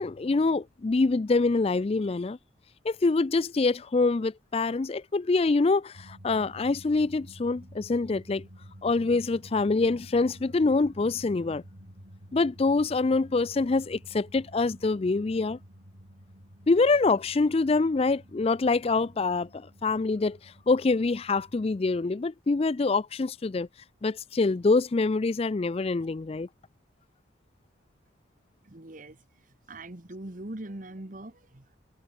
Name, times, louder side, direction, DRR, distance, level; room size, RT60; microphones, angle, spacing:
voice 1, 0.0-2.4 2.8-8.4 8.8-11.6 12.3-15.6 16.7-23.7 24.0-26.5, left 3 dB, 30° left, 0.4 m, -25 dB
sound 1, 5.9-22.1, equal, 65° right, 7.8 m, -51 dB
voice 2, 28.6-29.2 29.7-31.8, right 1 dB, 40° right, 1.4 m, -41 dB
head